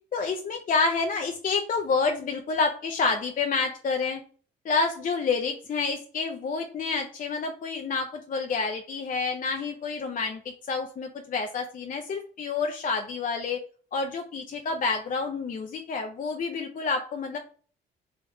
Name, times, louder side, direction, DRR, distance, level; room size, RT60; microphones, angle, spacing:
voice 1, 0.1-4.2 4.6-13.6 13.9-17.4, left 4 dB, 45° left, 4 dB, 0.6 m, -28 dB
3.5 x 3.0 x 4.7 m, 0.43 s
cardioid pair, 90°, 20 cm